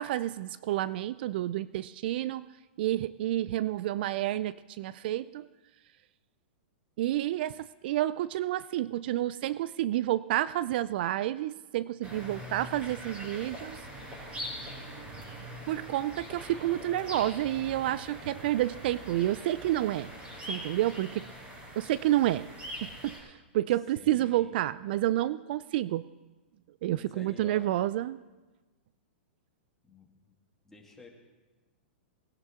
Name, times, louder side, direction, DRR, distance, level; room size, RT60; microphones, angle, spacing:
voice 1, 0.0-2.5 2.8-5.5 7.0-13.8 15.7-20.1 20.5-21.2 21.8-22.5 22.8-23.3 23.5-26.0 26.8-28.2, right 14 dB, 60° right, 18 dB, 0.3 m, -29 dB
sound 1, 12.0-23.2, equal, 20° right, 5.1 m, -43 dB
voice 2, 23.9-24.6 26.9-27.7 29.8-30.3 30.6-31.1, left 3 dB, 5° left, -1 dB, 2.2 m, -50 dB
20.0 x 10.5 x 3.6 m, 1.2 s
hypercardioid pair, 125°, 6 cm